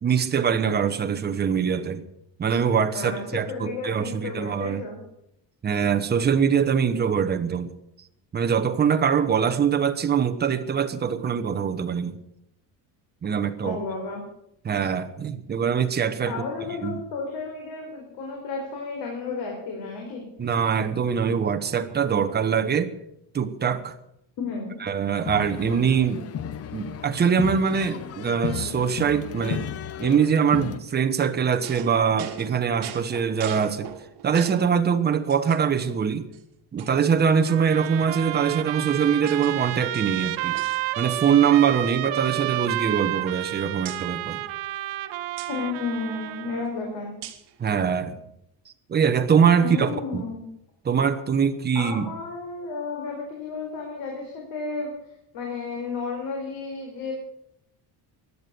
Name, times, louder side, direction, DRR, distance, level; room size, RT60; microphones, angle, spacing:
voice 1, 0.0-2.0 2.4-4.8 5.6-7.7 8.3-12.2 13.2-13.8 14.6-16.4 16.8-17.0 20.4-22.9 23.3-23.9 24.8-26.3 26.7-29.7 30.0-33.9 34.2-36.3 36.7-40.6 41.0-44.4 47.6-48.2 48.9-50.2 50.8-52.1, right 7 dB, 25° right, 7 dB, 1.0 m, -23 dB
voice 2, 2.9-5.0 13.6-14.2 16.3-20.2 24.4-24.8 45.5-47.1 49.6-50.4 51.7-54.9 55.3-57.1, left 4 dB, 75° left, 1 dB, 4.4 m, -32 dB
sound 1, 25.2-30.8, left 8 dB, 35° left, 0.7 m, -34 dB
sound 2, 31.2-34.8 35.3-35.9 36.3-36.4 36.8-37.8 38.6-39.5 39.8-41.4 41.6-41.9 42.2-43.5 43.8-44.1 45.4-45.5 47.2-47.5, right 11 dB, 65° right, 2.0 m, -42 dB
Trumpet, 37.5-46.7, right 16 dB, 85° right, 1.1 m, -31 dB
16.5 x 11.0 x 6.9 m, 0.78 s
cardioid pair, 170°, 43 cm